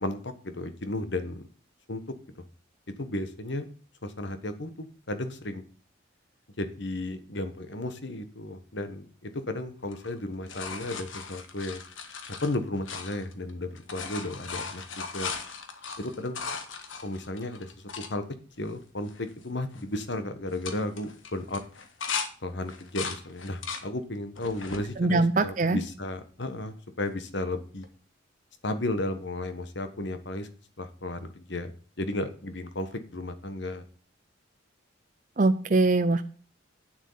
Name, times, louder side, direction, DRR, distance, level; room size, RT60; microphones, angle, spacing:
voice 1, 0.0-1.5 1.9-2.0 3.0-3.7 4.0-5.6 6.6-11.8 12.4-15.3 16.0-16.4 17.0-18.2 18.6-21.6 22.4-27.9 28.6-30.5 30.8-33.8, left 1 dB, 60° left, 9 dB, 1.4 m, -34 dB
sound 1, 9.8-13.5 13.8-18.1 18.7-18.8 19.0-19.4 19.7-20.1 20.5-22.3 22.7-23.9 24.4-24.9 25.5-26.2 27.8-27.9, left 5 dB, 80° left, 1.5 m, -38 dB
voice 2, 25.0-25.8 35.4-36.2, right 2 dB, 40° right, 9 dB, 0.6 m, -22 dB
9.2 x 7.4 x 5.7 m, 0.41 s
head